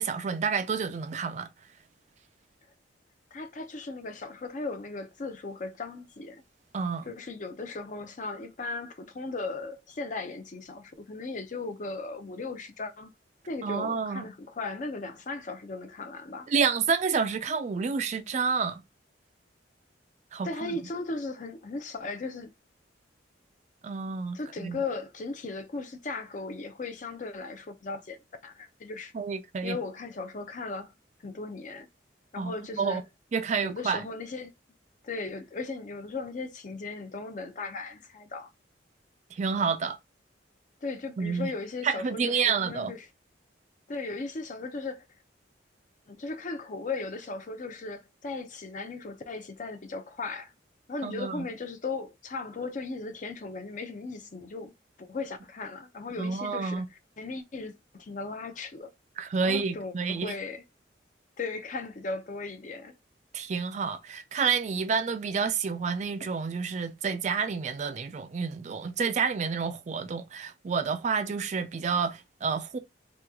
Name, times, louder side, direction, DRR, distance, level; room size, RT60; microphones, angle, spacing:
voice 1, 0.0-1.5 6.7-7.1 13.6-14.2 16.5-18.8 20.3-20.8 23.8-24.8 29.1-29.8 32.4-33.0 33.3-34.0 39.3-40.0 41.2-41.5 41.8-42.9 51.0-51.4 56.2-56.9 59.2-60.3 63.3-72.8, right 5 dB, 40° right, 0.3 m, -29 dB
voice 2, 3.3-6.4 7.1-13.1 13.5-16.5 20.4-22.5 24.3-28.2 28.4-29.1 29.6-30.9 31.2-31.9 32.3-33.0 33.6-34.5 35.0-38.5 40.8-43.1 43.9-45.1 46.1-50.5 50.9-54.7 55.0-56.8 57.2-58.9 59.4-60.6 61.4-62.9, left 3 dB, 45° left, 0.5 m, -37 dB
2.9 x 2.3 x 3.5 m
head